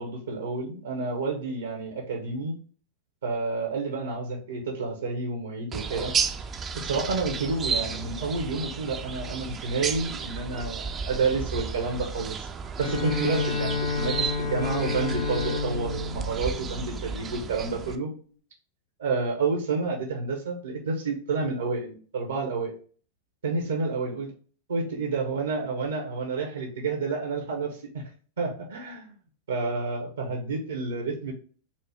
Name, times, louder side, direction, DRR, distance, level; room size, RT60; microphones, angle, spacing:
voice 1, 0.0-2.5 3.2-6.1 6.7-12.5 12.8-18.1 19.0-22.7 23.4-24.3 24.7-27.8 28.4-29.1 29.5-31.3, right 3 dB, 85° right, 1 dB, 0.9 m, -29 dB
sound 1, 5.7-18.0, right 6 dB, 25° right, 0.4 m, -33 dB
Bowed string instrument, 12.8-17.5, left 4 dB, 65° left, 0.6 m, -31 dB
4.1 x 2.2 x 3.3 m, 0.41 s
hypercardioid pair, 100°, 0 cm